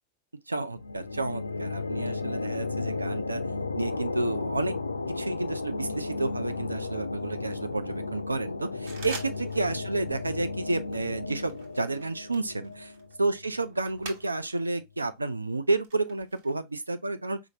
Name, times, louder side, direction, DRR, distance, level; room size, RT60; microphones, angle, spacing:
voice 1, 0.5-3.4 3.8-4.8 5.2-12.9 13.2-17.4, right 2 dB, 80° right, 0.3 m, -31 dB
sound 1, 0.7-14.1, left 3 dB, 80° left, 0.3 m, -34 dB
sound 2, 8.9-9.8 10.0-10.4 10.9-14.7 15.0-16.5, right 4 dB, 55° right, 1.2 m, -45 dB
5.0 x 2.4 x 2.8 m
figure-of-eight pair, 90°, 0 cm